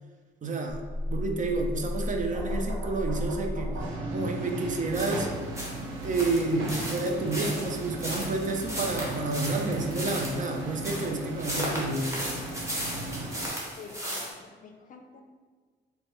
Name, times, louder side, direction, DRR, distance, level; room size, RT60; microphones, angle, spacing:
voice 1, 0.4-0.8 1.1-3.8 4.1-5.3 6.0-12.2, right 3 dB, 40° right, 3 dB, 0.5 m, -30 dB
sound 1, 0.8-3.9, left 1 dB, 65° right, 1.1 m, -33 dB
sound 2, 3.8-13.5, right 1 dB, 85° right, 0.6 m, -36 dB
sound 3, 4.9-14.3, equal, 15° right, 1.0 m, -35 dB
voice 2, 13.8-15.2, left 5 dB, 45° left, 4 dB, 0.4 m, -48 dB
4.2 x 2.2 x 3.0 m, 1.5 s
cardioid pair, 90°, 20 cm